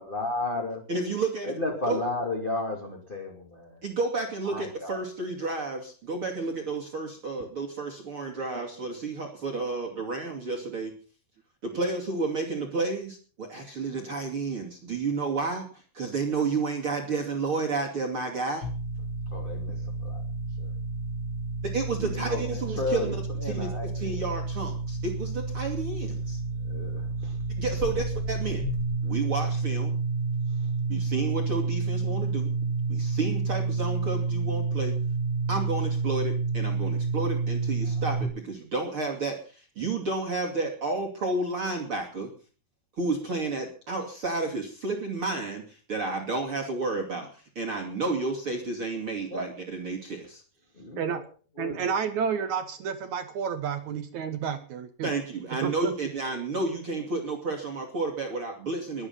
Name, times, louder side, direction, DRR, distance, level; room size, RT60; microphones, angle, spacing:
voice 1, 0.0-0.8 1.4-3.8 4.5-5.0 19.3-20.2 20.6-20.7 22.0-23.9 26.6-27.4 30.6-30.7 49.3-49.5 50.7-51.2 51.6-51.9, left 2 dB, 15° left, 1 dB, 2.2 m, -33 dB
voice 2, 0.9-1.5 1.9-2.0 3.8-10.9 11.6-18.7 21.6-23.7 23.9-26.4 27.6-28.6 29.0-29.9 30.9-32.5 32.9-35.0 35.5-42.3 43.0-50.4 55.0-59.1, right 3 dB, 35° right, 1 dB, 2.9 m, -31 dB
sound 1, 18.6-38.2, right 3 dB, 35° left, 2.1 m, -30 dB
voice 3, 51.6-55.1 55.6-55.9, right 7 dB, 65° right, 9 dB, 2.0 m, -30 dB
22.5 x 9.4 x 5.6 m, 0.38 s
omnidirectional pair, 4.7 m